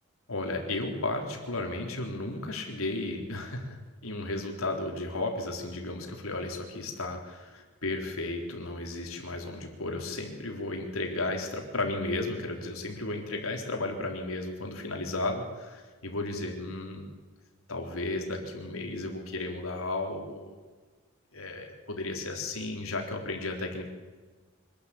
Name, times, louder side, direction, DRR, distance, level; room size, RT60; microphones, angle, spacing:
voice 1, 0.3-17.1 17.7-20.5 21.3-23.9, left 2 dB, 80° left, 2 dB, 3.9 m, -34 dB
25.0 x 12.0 x 8.7 m, 1.4 s
head